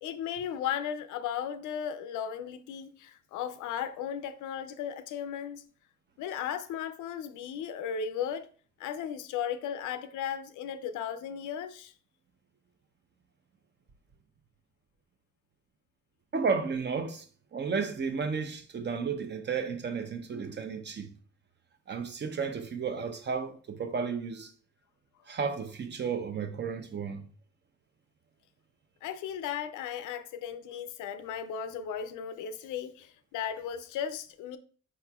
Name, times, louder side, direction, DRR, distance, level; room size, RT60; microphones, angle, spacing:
voice 1, 0.0-5.6 6.2-8.5 8.8-11.9 29.0-34.6, left 8 dB, 85° left, 0.5 m, -36 dB
voice 2, 16.3-17.2 17.5-21.1 21.9-24.5 25.3-27.3, right 5 dB, 35° right, 0.6 m, -33 dB
4.8 x 4.2 x 2.3 m
cardioid pair, 90°, 30 cm